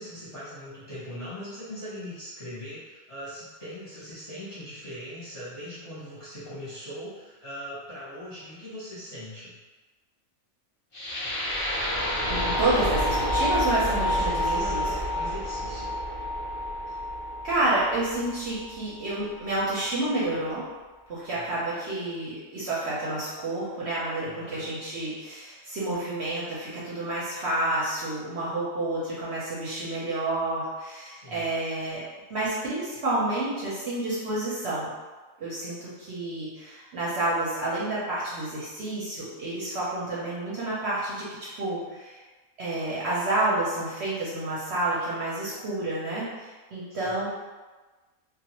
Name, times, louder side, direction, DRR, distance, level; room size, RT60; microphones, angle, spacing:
voice 1, 0.0-9.5 14.0-15.9 21.3-21.6 24.2-24.7 31.2-31.5 47.0-47.2, equal, 30° left, -12 dB, 0.8 m, -40 dB
sound 1, 10.9-19.0, left 1 dB, 50° left, 0.3 m, -28 dB
voice 2, 12.3-14.8 17.4-20.6 21.1-32.0 32.3-34.9 35.4-41.3 41.6-42.2 42.6-47.3, right 2 dB, 60° right, -8 dB, 0.8 m, -29 dB
2.4 x 2.2 x 2.9 m, 1.3 s
omnidirectional pair, 1.4 m